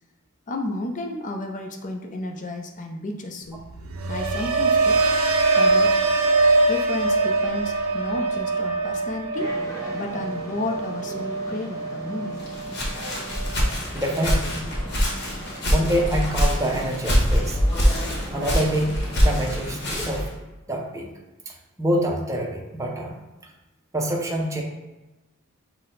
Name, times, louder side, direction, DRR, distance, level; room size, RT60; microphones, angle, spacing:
voice 1, 0.5-3.6 4.1-5.0 5.5-6.0 6.7-9.5 9.9-12.4, left 2 dB, 35° left, 3 dB, 0.5 m, -32 dB
sound 1, 3.6-13.7 14.0-14.5, right 3 dB, 85° right, 0.5 m, -23 dB
sound 2, 9.3-20.2, equal, 15° left, 1.0 m, -39 dB
Walk footsteps, 12.4-20.3, equal, 55° left, 1.1 m, -24 dB
voice 2, 13.9-14.6 15.7-17.6 18.3-18.9 19.2-20.3 20.7-21.1 21.5-21.6 21.8-23.2 23.9-24.6, right 1 dB, 15° right, -1 dB, 0.6 m, -26 dB
5.9 x 2.1 x 3.9 m, 1.1 s
head